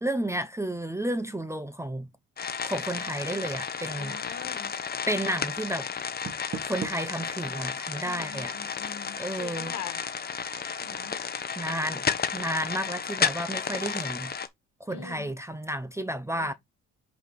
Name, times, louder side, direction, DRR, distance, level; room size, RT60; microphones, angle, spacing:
voice 1, 0.0-2.1 2.6-4.2 5.1-5.9 6.6-8.5 9.2-9.7 11.6-12.0 12.3-14.3 14.8-16.5, right 1 dB, 10° right, 0.6 m, -32 dB
sound 1, 2.4-14.5, left 6 dB, 30° left, 0.9 m, -32 dB
voice 2, 3.9-4.7 8.0-10.0 10.8-11.1 14.9-15.3 16.3-16.5, left 8 dB, 70° left, 1.4 m, -43 dB
Door, 6.0-7.2, right 5 dB, 40° right, 1.4 m, -38 dB
5.3 x 4.1 x 5.0 m
cardioid pair, 90°, 30 cm